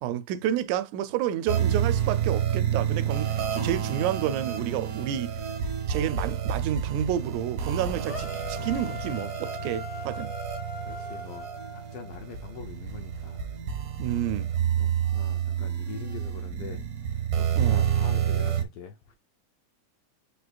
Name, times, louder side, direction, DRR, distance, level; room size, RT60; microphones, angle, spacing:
voice 1, 0.0-5.4 5.9-10.3 14.0-14.5 17.6-17.8, right 10 dB, 90° right, 2.0 m, -30 dB
sound 1, 1.5-18.6, right 9 dB, 60° right, 1.5 m, -29 dB
sound 2, 8.1-12.2, left 3 dB, 60° left, 0.7 m, -40 dB
voice 2, 10.8-13.5 14.0-14.4 14.8-19.1, left 7 dB, 80° left, 1.3 m, -44 dB
5.1 x 4.5 x 2.3 m
omnidirectional pair, 3.3 m